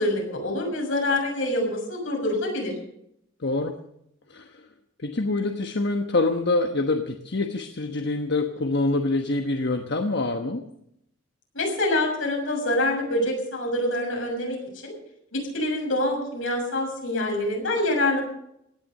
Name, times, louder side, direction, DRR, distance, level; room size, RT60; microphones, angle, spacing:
voice 1, 0.0-2.7 11.5-14.9 15.3-18.2, left 1 dB, 80° left, 0 dB, 6.8 m, -26 dB
voice 2, 3.4-3.8 4.3-4.6 5.0-10.6, left 2 dB, 60° left, 5 dB, 1.2 m, -25 dB
17.5 x 11.0 x 6.5 m, 0.76 s
head